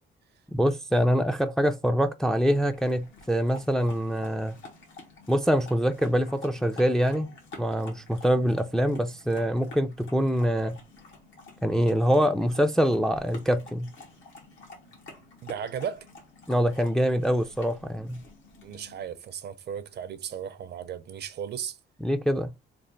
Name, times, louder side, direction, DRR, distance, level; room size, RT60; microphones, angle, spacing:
voice 1, 0.5-4.6 5.3-7.3 7.6-10.8 11.6-13.9 16.5-18.2 22.0-22.5, equal, 5° left, 0.3 m, -24 dB
sound 1, 2.3-19.0, left 3 dB, 75° left, 1.3 m, -49 dB
voice 2, 15.4-16.1 18.6-21.8, right 8 dB, 55° right, 0.5 m, -35 dB
3.3 x 2.4 x 3.8 m
cardioid pair, 90°, 20 cm